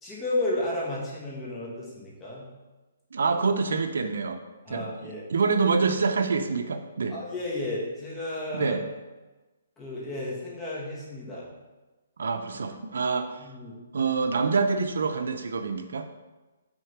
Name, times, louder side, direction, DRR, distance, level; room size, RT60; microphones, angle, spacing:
voice 1, 0.0-2.5 4.6-5.3 7.1-8.8 9.8-11.5 13.4-14.1, left 2 dB, 10° left, -5 dB, 1.4 m, -33 dB
voice 2, 3.1-4.4 4.7-7.2 8.5-8.8 12.2-13.4 13.9-16.1, right 4 dB, 80° right, 6 dB, 0.6 m, -26 dB
6.3 x 3.6 x 6.0 m, 1.2 s
hypercardioid pair, 165°, 0 cm